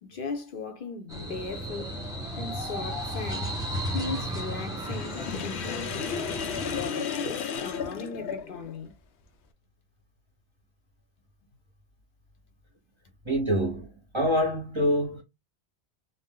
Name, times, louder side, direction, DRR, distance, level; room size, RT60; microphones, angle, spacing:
voice 1, 0.0-2.0 2.4-3.5 3.9-6.0 6.6-8.9, left 4 dB, 60° left, 0.7 m, -37 dB
sound 1, 1.1-6.9, equal, 5° right, 0.8 m, -34 dB
Sink (filling or washing), 4.8-8.8, left 6 dB, 90° left, 0.9 m, -33 dB
voice 2, 13.3-13.9 14.1-15.2, equal, 30° right, 0.6 m, -25 dB
2.7 x 2.0 x 3.5 m
omnidirectional pair, 1.1 m